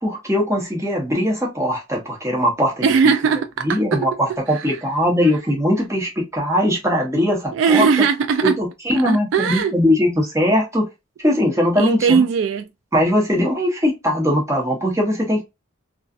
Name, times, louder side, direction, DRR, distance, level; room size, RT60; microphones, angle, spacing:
voice 1, 0.0-3.1 3.6-7.9 8.4-10.8 11.2-12.2 12.9-15.4, equal, 15° right, 0.8 m, -20 dB
voice 2, 2.8-4.7 5.2-5.4 7.5-8.6 9.1-9.7 11.8-12.7, right 6 dB, 70° right, 0.3 m, -19 dB
2.5 x 2.3 x 2.3 m
head